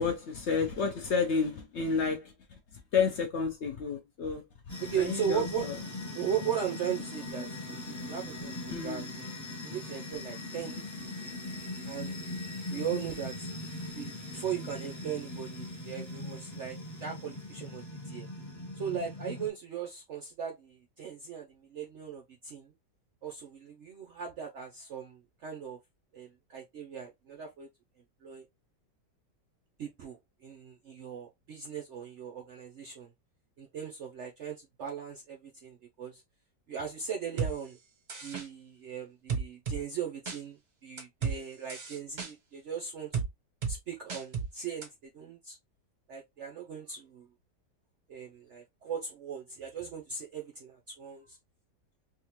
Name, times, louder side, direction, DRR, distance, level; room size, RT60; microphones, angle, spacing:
voice 1, 0.0-2.3 2.7-4.4 4.9-5.7 8.7-9.1 12.7-12.9, left 5 dB, 65° left, 0.6 m, -30 dB
sound 1, 4.7-19.5, left 2 dB, 30° left, 0.3 m, -40 dB
voice 2, 4.8-5.7 6.1-10.8 11.2-11.3 11.9-12.2 12.7-13.5 13.9-18.3 18.8-22.7 23.2-25.8 26.1-27.7 28.2-28.4 29.8-33.1 33.6-36.2 36.7-37.8 38.2-43.1 43.7-45.6 46.1-47.3 48.1-51.4, right 8 dB, 70° right, 0.6 m, -38 dB
sound 2, 37.4-37.5 38.1-38.5 39.3-39.8 40.3-40.4 41.0-41.4 41.7-42.3 43.1-43.3 43.6-43.8 44.1-44.5 44.8-44.9, right 5 dB, 35° right, 0.8 m, -32 dB
3.6 x 2.6 x 2.9 m
omnidirectional pair, 1.9 m